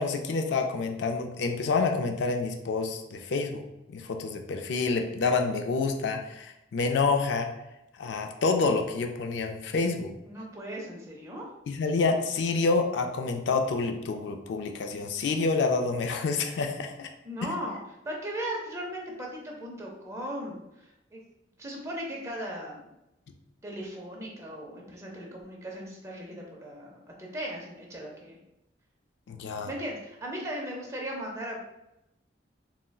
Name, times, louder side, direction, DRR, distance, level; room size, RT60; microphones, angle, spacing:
voice 1, 0.0-3.6 3.9-7.5 8.0-10.1 11.7-17.1 29.3-29.7, left 4 dB, 65° left, 4 dB, 0.3 m, -28 dB
voice 2, 10.2-11.5 17.2-21.2 21.6-22.8 23.6-28.4 29.6-31.6, equal, 15° right, -2 dB, 0.5 m, -37 dB
3.6 x 2.1 x 2.2 m, 0.88 s
head